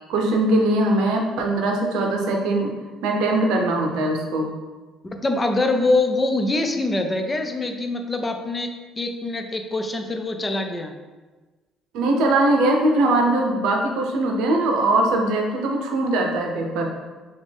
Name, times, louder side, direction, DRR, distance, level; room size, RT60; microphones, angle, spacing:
voice 1, 0.0-2.7 3.0-4.5 11.9-16.9, right 2 dB, 85° right, 1 dB, 0.7 m, -21 dB
voice 2, 5.2-8.7 9.0-10.9, left 2 dB, 15° left, 5 dB, 0.4 m, -24 dB
5.2 x 2.5 x 3.4 m, 1.3 s
cardioid pair, 150°, 0 cm